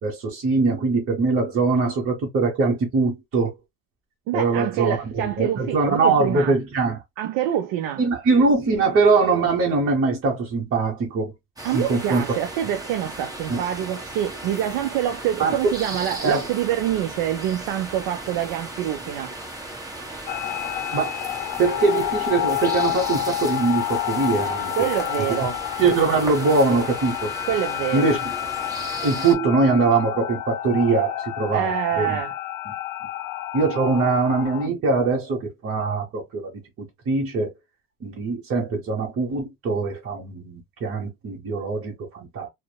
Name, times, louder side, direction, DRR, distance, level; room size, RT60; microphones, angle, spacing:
voice 1, 0.0-3.5 4.3-7.0 8.0-11.3 11.7-12.2 13.5-13.6 15.4-15.6 16.2-16.5 20.9-21.1 21.6-24.9 25.3-25.5 25.8-27.3 27.9-28.3 29.0-32.2 32.7-32.8 33.5-37.5 38.0-42.5, right 4 dB, 35° right, 0.9 m, -22 dB
voice 2, 4.3-6.5 7.2-8.0 11.6-19.3 24.8-25.6 27.5-28.1 31.5-32.4, right 11 dB, 65° right, 0.5 m, -26 dB
sound 1, 11.6-29.3, right 2 dB, 10° right, 0.9 m, -36 dB
sound 2, 20.3-34.7, left 15 dB, 75° left, 0.5 m, -29 dB
2.8 x 2.1 x 2.2 m
supercardioid pair, 95°, 37 cm